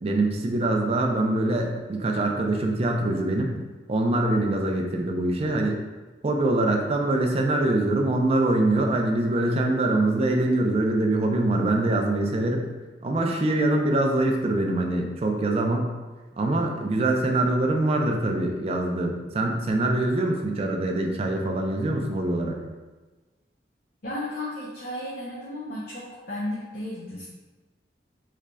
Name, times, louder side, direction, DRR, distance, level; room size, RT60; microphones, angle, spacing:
voice 1, 0.0-3.5 3.9-5.8 6.2-12.6 13.0-15.9 16.4-22.6, right 2 dB, 35° right, 2 dB, 0.4 m, -24 dB
voice 2, 24.0-27.3, left 1 dB, 55° left, -6 dB, 0.6 m, -34 dB
3.8 x 3.2 x 2.2 m, 1.2 s
head